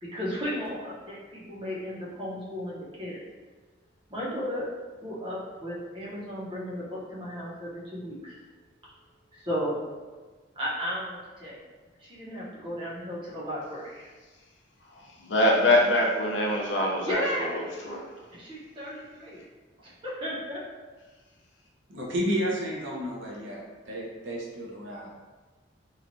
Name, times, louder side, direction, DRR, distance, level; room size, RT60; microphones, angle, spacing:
voice 1, 0.0-3.2 4.1-4.7 5.0-8.3 9.4-9.8 10.5-11.6 12.0-14.1 17.0-17.6 18.3-19.4 19.8-20.6, equal, 25° right, -7 dB, 0.8 m, -34 dB
voice 2, 15.2-17.2 17.5-18.1, left 1 dB, 70° left, -1 dB, 0.5 m, -23 dB
voice 3, 21.9-25.1, equal, 80° right, -3 dB, 0.7 m, -32 dB
3.1 x 2.3 x 2.6 m, 1.3 s
head